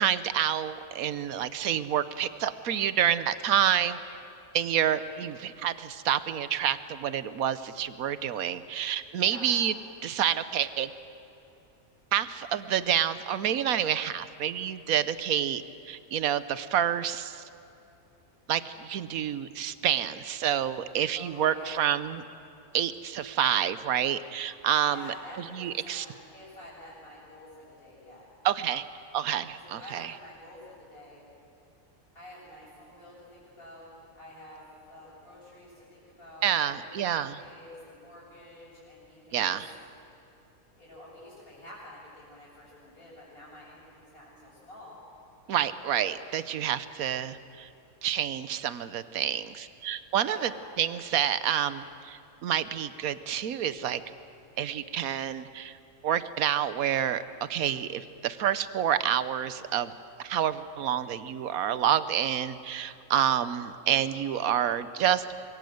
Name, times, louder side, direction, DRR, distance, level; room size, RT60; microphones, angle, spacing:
voice 1, 0.0-4.0 4.5-9.7 10.0-10.9 12.1-17.4 18.5-22.2 22.7-25.1 25.5-26.1 28.4-28.8 29.1-30.1 36.4-37.4 39.3-39.7 45.5-47.7 48.0-50.5 50.8-54.0 54.6-55.8 56.0-59.9 60.2-65.4, right 10 dB, 75° right, 14 dB, 1.3 m, -28 dB
voice 2, 9.2-9.5 21.1-21.8 24.9-28.3 29.5-31.2 32.1-33.9 34.1-39.6 40.7-45.0 50.2-50.6, left 1 dB, 70° left, -10 dB, 8.2 m, -48 dB
26.0 x 22.5 x 7.9 m, 2.7 s
omnidirectional pair, 1.5 m